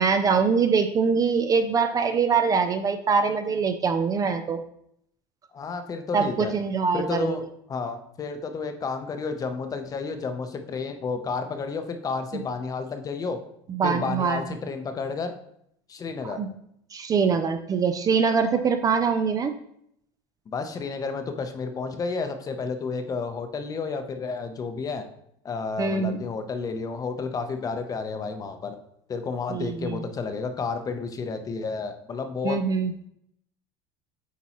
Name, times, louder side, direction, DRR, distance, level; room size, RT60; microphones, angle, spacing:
voice 1, 0.0-4.6 6.1-7.4 13.7-14.4 16.2-16.5 16.9-19.5 25.8-26.2 29.5-30.0 32.4-32.9, right 5 dB, 25° right, 8 dB, 0.4 m, -23 dB
voice 2, 5.5-6.5 6.9-13.4 13.8-15.3 15.9-16.4 20.5-25.0 25.4-28.8 29.1-32.6, left 4 dB, 25° left, 7 dB, 0.7 m, -31 dB
8.2 x 4.5 x 3.0 m, 0.72 s
supercardioid pair, 125°, 13 cm